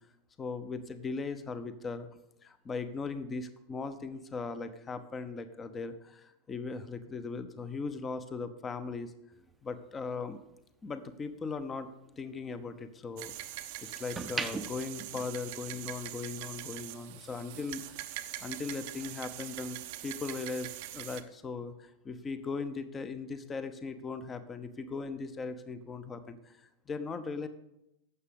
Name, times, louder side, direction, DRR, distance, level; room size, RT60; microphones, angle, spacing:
voice 1, 0.4-2.1 2.4-9.1 9.6-10.4 10.8-13.3 13.8-18.1 18.4-27.5, left 4 dB, 20° left, 11 dB, 0.9 m, -39 dB
sound 1, 9.3-11.6 12.0-13.5 13.9-16.0 16.3-16.6, right 4 dB, 10° right, 0.7 m, -41 dB
sound 2, 13.2-21.2, right 15 dB, 50° right, 0.6 m, -43 dB
11.5 x 7.5 x 5.2 m, 0.85 s
figure-of-eight pair, 90°, 0 cm